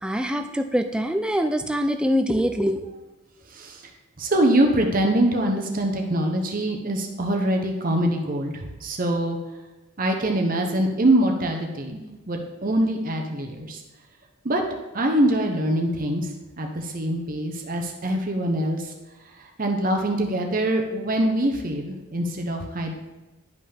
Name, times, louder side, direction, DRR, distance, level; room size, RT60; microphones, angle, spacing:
voice 1, 0.0-2.9, equal, 5° right, 7 dB, 0.3 m, -24 dB
voice 2, 3.5-3.8 4.2-9.4 10.0-13.8 14.4-14.6 14.9-16.3 16.6-18.9 19.4-22.9, right 1 dB, 40° right, 2 dB, 0.8 m, -24 dB
10.5 x 5.5 x 3.4 m, 1.1 s
head